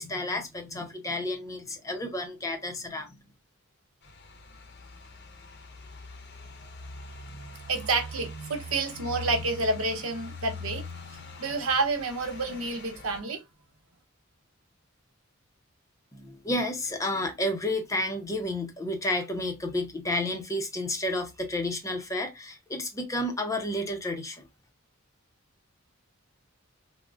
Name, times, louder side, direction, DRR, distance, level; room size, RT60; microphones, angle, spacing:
voice 1, 0.0-3.1 16.1-24.5, left 1 dB, 15° left, 0.5 m, -31 dB
sound 1, 4.0-13.2, left 2 dB, 55° left, 0.7 m, -42 dB
voice 2, 7.7-10.8 11.4-13.4, right 3 dB, 80° right, 0.9 m, -29 dB
3.6 x 2.0 x 2.3 m
head